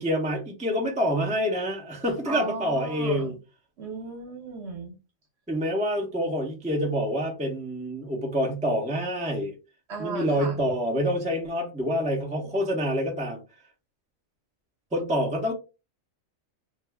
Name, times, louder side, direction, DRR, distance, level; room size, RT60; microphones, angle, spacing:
voice 1, 0.0-3.4 5.5-9.6 10.0-13.4 14.9-15.5, equal, 10° right, 0.4 m, -27 dB
voice 2, 2.3-3.3 3.8-4.9 9.9-10.6, right 3 dB, 55° right, 1.1 m, -35 dB
2.5 x 2.3 x 3.3 m
omnidirectional pair, 1.4 m